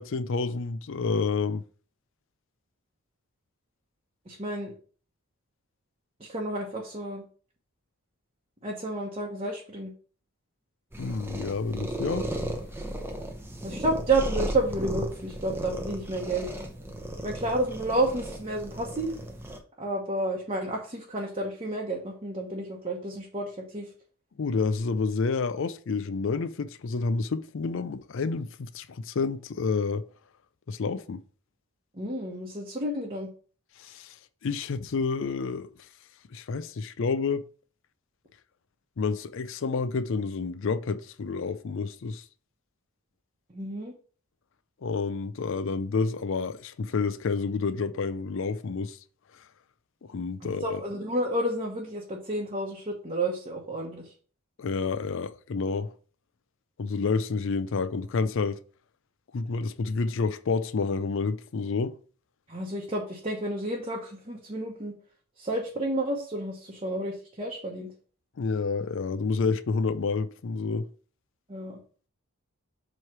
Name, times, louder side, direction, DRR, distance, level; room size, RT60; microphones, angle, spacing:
voice 1, 0.0-1.6 11.0-12.2 24.4-30.1 30.7-31.2 33.8-34.2 34.4-35.7 36.3-37.4 39.0-42.2 44.8-49.0 50.1-50.8 54.6-55.9 56.8-58.6 59.3-62.0 68.4-70.9, left 4 dB, 55° left, 0.4 m, -29 dB
voice 2, 4.3-4.7 6.2-7.2 8.6-9.9 13.6-16.5 17.2-19.1 19.8-23.9 31.9-33.3 43.5-43.9 50.4-54.1 62.5-64.9 65.4-67.9 71.5-71.8, right 2 dB, 25° right, 1.1 m, -31 dB
sound 1, 10.9-19.6, right 1 dB, 10° right, 0.7 m, -35 dB
7.6 x 3.2 x 6.0 m
head